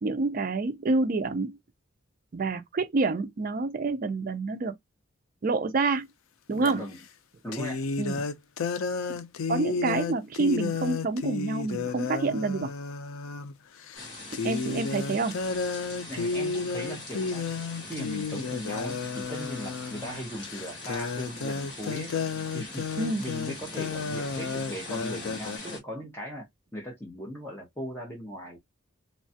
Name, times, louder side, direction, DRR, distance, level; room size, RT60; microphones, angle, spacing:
voice 1, 0.0-1.6 2.3-4.7 5.4-6.1 6.5-6.9 8.0-8.2 9.5-12.7 14.3-15.4 23.0-23.2, right 3 dB, 40° right, 0.4 m, -28 dB
sound 1, 6.6-6.7 7.5-13.5 13.9-14.1 14.3-25.6, left 4 dB, 85° left, 0.4 m, -32 dB
voice 2, 6.6-7.0 7.4-7.8 16.1-17.5 17.9-22.1 22.5-26.5 26.7-28.6, equal, 10° left, 0.7 m, -38 dB
sound 2, 13.9-25.8, left 2 dB, 60° left, 1.7 m, -42 dB
3.1 x 2.3 x 2.6 m
head